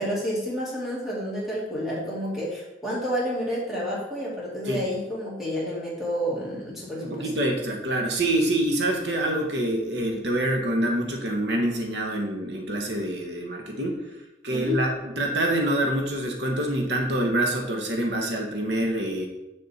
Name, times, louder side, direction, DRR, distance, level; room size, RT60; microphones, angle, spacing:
voice 1, 0.0-7.3 14.5-14.8, equal, ahead, -7 dB, 2.4 m, -30 dB
voice 2, 7.0-14.0 14.4-19.3, right 1 dB, 75° right, 2 dB, 1.3 m, -26 dB
7.6 x 6.7 x 4.2 m, 0.99 s
head